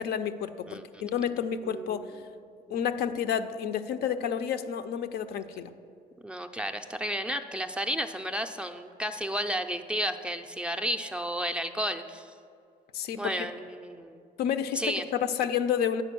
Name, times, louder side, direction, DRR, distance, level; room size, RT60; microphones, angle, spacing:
voice 1, 0.0-2.1 2.7-5.7 12.9-13.5 14.4-16.0, left 8 dB, 70° left, 10 dB, 0.5 m, -30 dB
voice 2, 0.7-1.1 1.6-2.3 2.7-2.8 6.2-12.3 13.2-14.2 14.7-15.0, equal, 5° right, 5 dB, 0.3 m, -33 dB
9.2 x 4.3 x 6.8 m, 2.3 s
cardioid pair, 110°, 17 cm